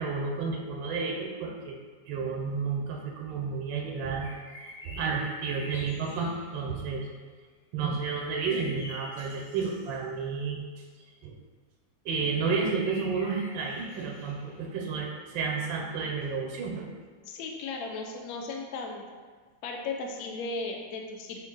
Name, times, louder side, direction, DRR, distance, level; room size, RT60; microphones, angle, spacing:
voice 1, 0.0-1.7 2.1-4.3 4.8-7.1 7.7-10.8 11.2-11.3 12.0-16.9, right 5 dB, 85° right, 0 dB, 1.3 m, -31 dB
sound 1, 4.2-6.7 8.1-10.0 12.2-14.8, left 1 dB, 50° left, 1.2 m, -47 dB
voice 2, 17.2-19.0 19.6-21.5, left 3 dB, 75° left, 1 dB, 0.8 m, -36 dB
3.8 x 2.4 x 3.6 m, 1.5 s
omnidirectional pair, 2.1 m